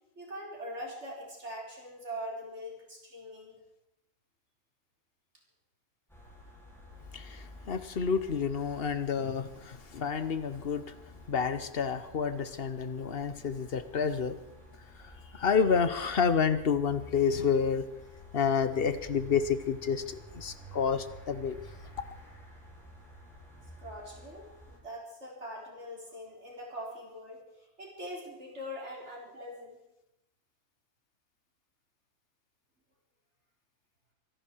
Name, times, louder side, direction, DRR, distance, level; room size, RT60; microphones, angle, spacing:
voice 1, 0.2-3.6 23.8-29.8, equal, 50° right, -1 dB, 4.4 m, -42 dB
sound 1, 6.1-24.8, equal, ahead, 5.9 m, -51 dB
voice 2, 7.1-10.9 11.3-14.4 15.3-17.8 18.3-21.6, left 6 dB, 45° left, 12 dB, 1.1 m, -29 dB
25.0 x 11.5 x 4.6 m, 0.87 s
omnidirectional pair, 1.5 m